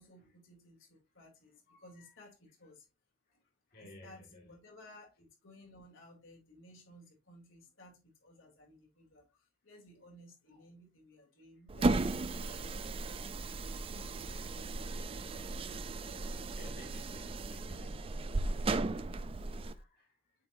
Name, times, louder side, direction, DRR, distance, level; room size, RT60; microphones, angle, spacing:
voice 1, 0.0-2.9 3.8-13.2 13.6-15.9 17.0-17.9, left 1 dB, 85° left, 2.7 m, -58 dB
voice 2, 1.7-2.1 3.7-4.5 16.5-18.2 18.8-20.3, left 1 dB, 50° left, 1.7 m, -57 dB
sound 1, 11.7-19.8, right 2 dB, 30° right, 0.4 m, -36 dB
8.2 x 4.5 x 2.6 m
head